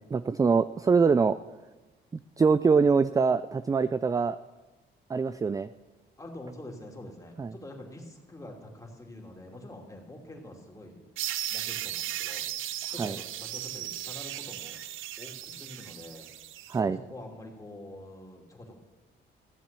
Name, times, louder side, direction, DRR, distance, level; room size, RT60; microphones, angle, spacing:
voice 1, 0.0-1.4 2.4-4.4 5.1-5.7 7.4-7.5 13.0-13.2 16.7-17.0, right 5 dB, 20° right, 13 dB, 0.3 m, -24 dB
voice 2, 6.2-11.1 11.5-12.4 12.9-14.8 15.2-16.3 16.7-18.7, left 1 dB, 15° left, 0 dB, 2.8 m, -45 dB
sound 1, 11.2-16.8, right 12 dB, 85° right, 0.6 m, -36 dB
15.0 x 7.4 x 6.9 m, 1.2 s
cardioid pair, 90°, 20 cm